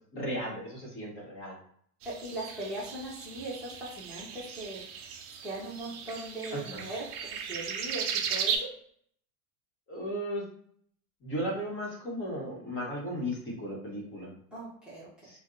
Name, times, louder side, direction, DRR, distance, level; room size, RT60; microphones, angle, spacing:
voice 1, 0.1-1.6 6.5-6.9 9.9-10.4 11.2-14.3 15.2-15.4, equal, 30° left, -3 dB, 1.2 m, -35 dB
voice 2, 2.0-5.1 5.4-7.0 7.3-8.7 14.5-15.1, right 2 dB, ahead, -8 dB, 0.9 m, -39 dB
sound 1, 2.0-8.6, right 7 dB, 35° right, 0.4 m, -36 dB
2.6 x 2.2 x 3.7 m, 0.62 s
supercardioid pair, 125°, 44 cm